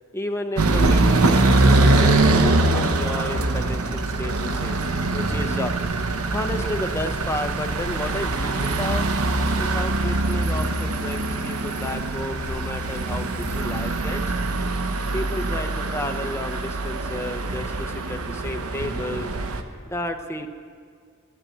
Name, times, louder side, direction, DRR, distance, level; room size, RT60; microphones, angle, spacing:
voice 1, 0.1-4.8 5.1-5.7 6.3-9.1 9.6-14.2 15.1-19.3 19.8-20.5, left 1 dB, 10° left, 5 dB, 0.7 m, -32 dB
sound 1, 0.6-19.6, right 2 dB, 80° right, 0.9 m, -23 dB
13.5 x 8.7 x 8.0 m, 2.1 s
head